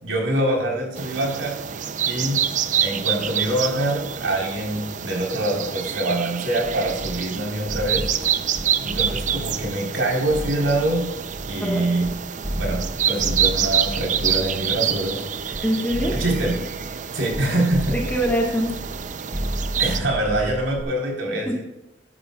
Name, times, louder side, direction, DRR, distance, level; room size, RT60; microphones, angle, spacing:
voice 1, 0.0-1.6 2.0-2.5 2.8-8.1 8.8-11.1 11.5-12.1 12.6-15.6 16.1-16.7 17.1-18.0 19.8-21.6, right 1 dB, 85° right, -1 dB, 4.1 m, -25 dB
sound 1, 1.0-20.0, right 8 dB, 40° right, 0.5 m, -27 dB
sound 2, 6.6-12.1 12.4-15.6 15.9-17.4 17.7-19.0 19.3-20.8, equal, 15° right, 1.1 m, -32 dB
voice 2, 11.6-12.0 15.6-16.2 17.9-18.7 21.3-21.6, equal, 10° left, 0 dB, 1.5 m, -24 dB
12.0 x 11.0 x 2.4 m, 0.93 s
head